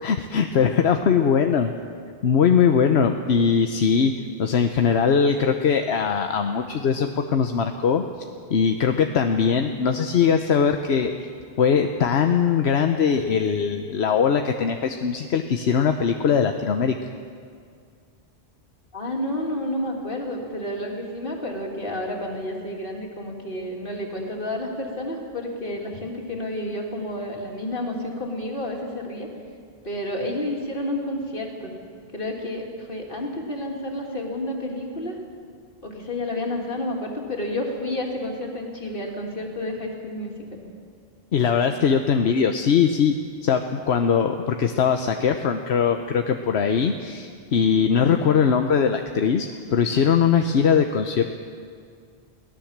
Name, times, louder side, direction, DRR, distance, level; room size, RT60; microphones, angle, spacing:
voice 1, 0.0-1.7 2.2-4.1 4.4-8.0 8.5-11.1 11.6-17.0 41.3-43.1 43.4-51.4, left 6 dB, 80° left, 6 dB, 1.1 m, -21 dB
voice 2, 18.9-29.3 29.8-31.7 32.1-35.2 35.8-40.6, left 1 dB, 55° left, 0 dB, 3.2 m, -30 dB
23.0 x 17.0 x 7.4 m, 2.2 s
omnidirectional pair, 1.1 m